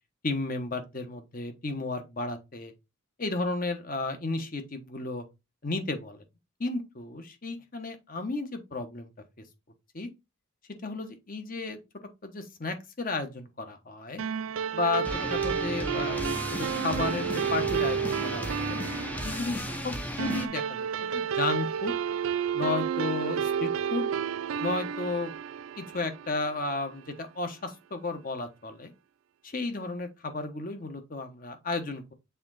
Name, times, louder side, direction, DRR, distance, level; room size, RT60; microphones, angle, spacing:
voice 1, 0.2-2.7 3.2-5.2 5.6-6.2 6.6-9.1 9.9-10.1 10.7-14.2 14.7-18.8 19.2-21.9 22.5-24.1 24.6-25.3 25.8-28.9 29.4-32.1, left 3 dB, 40° left, 1.1 m, -33 dB
sound 1, 14.2-26.9, right 7 dB, 70° right, 0.4 m, -31 dB
sound 2, 15.0-20.5, equal, 10° left, 0.7 m, -35 dB
7.0 x 3.8 x 4.0 m
head